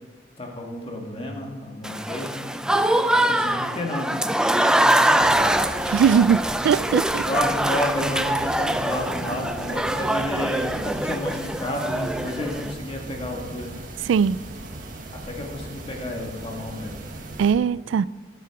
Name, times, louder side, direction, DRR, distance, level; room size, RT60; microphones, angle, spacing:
voice 1, 0.4-2.4 3.1-5.5 7.0-13.7 15.1-16.9, left 1 dB, 30° left, 1.8 m, -31 dB
Applause / Crowd, 1.8-12.7, right 1 dB, 5° right, 0.3 m, -23 dB
sound 1, 5.2-17.5, right 2 dB, 50° right, 1.5 m, -38 dB
voice 2, 5.9-7.2 14.0-14.4 17.4-18.1, right 7 dB, 85° right, 0.3 m, -20 dB
14.0 x 7.6 x 5.9 m
head